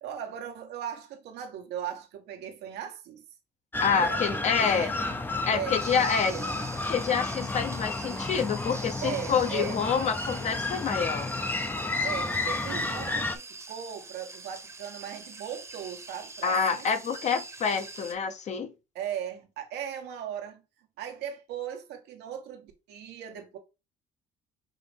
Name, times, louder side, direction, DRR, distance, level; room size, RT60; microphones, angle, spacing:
voice 1, 0.0-3.2 3.9-5.1 5.5-6.7 9.0-9.8 12.0-16.9 18.9-20.6 21.0-23.6, right 9 dB, 85° right, 1.1 m, -38 dB
sound 1, 3.7-13.4, left 3 dB, 10° left, 0.5 m, -32 dB
voice 2, 3.8-4.9 5.4-6.3 6.9-11.3 16.4-18.7, left 6 dB, 45° left, 0.7 m, -27 dB
sound 2, 5.8-18.1, right 3 dB, 15° right, 0.9 m, -44 dB
5.6 x 2.6 x 3.3 m
cardioid pair, 110°, 17 cm